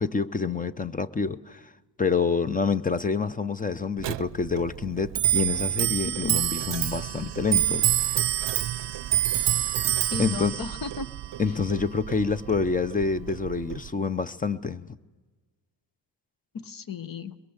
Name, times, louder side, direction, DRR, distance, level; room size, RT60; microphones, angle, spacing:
voice 1, 0.0-1.6 2.0-8.2 10.2-10.5 11.4-15.0, left 5 dB, 20° left, 0.7 m, -27 dB
Clock, 4.0-13.9, right 13 dB, 65° right, 0.6 m, -27 dB
voice 2, 6.0-6.4 10.1-11.1 11.5-11.6 16.5-17.3, left 5 dB, 50° left, 1.1 m, -35 dB
22.0 x 22.0 x 8.0 m
wide cardioid pair, 140°, 44 cm